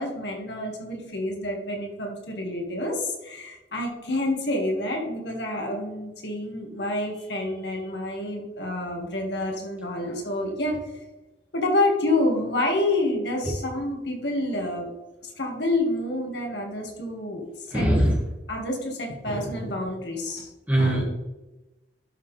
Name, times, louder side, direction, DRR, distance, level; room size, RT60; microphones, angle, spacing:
voice 1, 0.0-10.8 11.5-14.9 15.4-17.9 18.5-20.5 20.8-21.0, left 1 dB, 75° left, 0 dB, 2.0 m, -28 dB
voice 2, 17.7-18.2 20.7-21.0, right 1 dB, 10° right, -4 dB, 2.1 m, -20 dB
11.5 x 5.5 x 3.4 m, 1.0 s
head